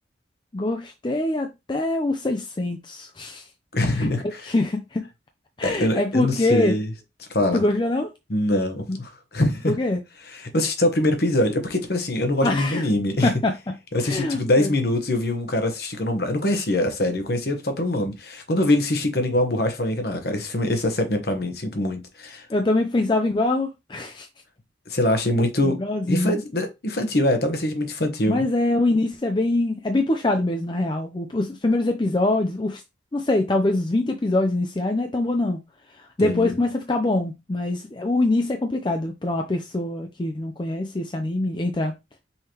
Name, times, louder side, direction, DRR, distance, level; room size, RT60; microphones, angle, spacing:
voice 1, 0.5-3.4 3.9-4.1 4.4-5.0 5.6-6.8 7.5-8.1 8.9-9.0 9.7-10.0 12.4-12.8 13.2-13.8 14.0-14.7 22.5-24.3 25.6-26.4 28.3-32.8 33.1-35.6 36.2-41.9, left 2 dB, 25° left, 0.4 m, -24 dB
voice 2, 3.7-4.5 5.6-6.9 7.3-7.6 8.3-9.7 10.3-13.3 13.9-22.4 24.9-25.8 26.1-28.5 36.2-36.5, left 1 dB, 55° left, 1.0 m, -23 dB
5.6 x 3.2 x 2.9 m
head